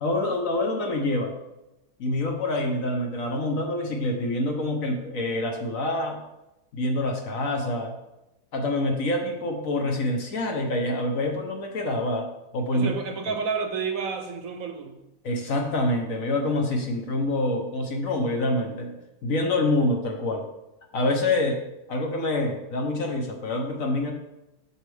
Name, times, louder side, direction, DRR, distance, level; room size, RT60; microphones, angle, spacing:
voice 1, 0.0-1.3 2.0-6.2 6.7-8.0 8.5-12.9 13.3-13.4 15.2-18.9 19.2-20.4 20.9-21.6 21.9-24.1, left 1 dB, 60° left, 2 dB, 1.3 m, -26 dB
voice 2, 12.7-15.0, right 5 dB, 65° right, 5 dB, 1.1 m, -30 dB
7.2 x 6.4 x 3.4 m, 0.94 s
omnidirectional pair, 1.7 m